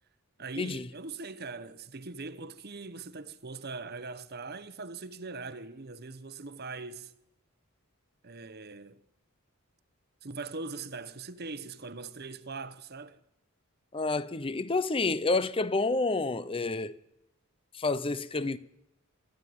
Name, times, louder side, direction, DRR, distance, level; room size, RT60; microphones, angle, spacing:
voice 1, 0.4-7.1 8.2-9.0 10.2-13.2, right 3 dB, 45° right, 1.1 m, -41 dB
voice 2, 13.9-17.0 17.7-18.6, left 3 dB, 25° left, 0.7 m, -29 dB
24.0 x 14.0 x 9.6 m
head